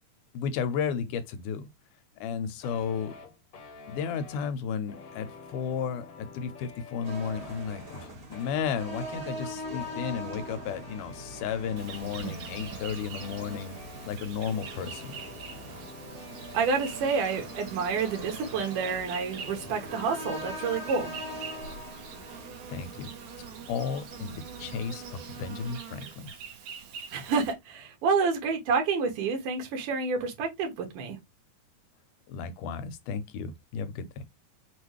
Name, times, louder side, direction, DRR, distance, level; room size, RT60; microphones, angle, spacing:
voice 1, 0.3-1.7 2.2-3.2 3.9-13.8 14.0-15.2 22.7-23.1 23.7-26.3 32.3-34.2, left 7 dB, 90° left, 2.2 m, -33 dB
sound 1, 2.6-21.8, left 4 dB, 65° left, 1.1 m, -48 dB
sound 2, 7.0-25.8, equal, 45° right, 1.2 m, -43 dB
Insect, 11.8-27.5, right 7 dB, 70° right, 2.5 m, -44 dB
voice 2, 16.5-21.1 27.1-31.2, right 5 dB, 90° right, 2.8 m, -28 dB
6.0 x 2.5 x 3.1 m
omnidirectional pair, 3.6 m